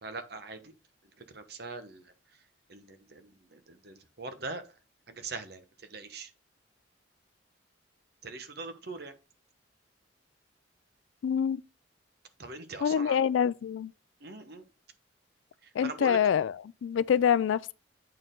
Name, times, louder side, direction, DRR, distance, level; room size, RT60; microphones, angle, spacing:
voice 1, 0.0-0.7 1.2-2.1 2.7-4.6 5.1-5.6 5.9-6.3 8.2-9.1 12.4-13.2 14.2-14.6 15.8-16.2, right 3 dB, 55° right, 1.1 m, -41 dB
voice 2, 11.2-11.6 12.8-13.9 15.7-17.7, left 8 dB, 80° left, 0.3 m, -26 dB
8.6 x 4.4 x 3.7 m
head